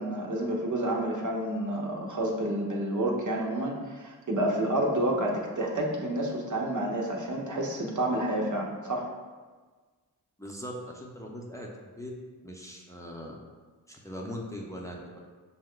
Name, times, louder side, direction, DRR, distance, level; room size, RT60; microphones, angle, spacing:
voice 1, 0.0-9.1, right 1 dB, 50° right, -1 dB, 0.9 m, -29 dB
voice 2, 10.4-11.7 12.0-12.1 12.4-13.3 13.9-15.2, equal, 10° left, -2 dB, 0.7 m, -40 dB
5.6 x 2.2 x 3.7 m, 1.4 s
cardioid pair, 45°, 38 cm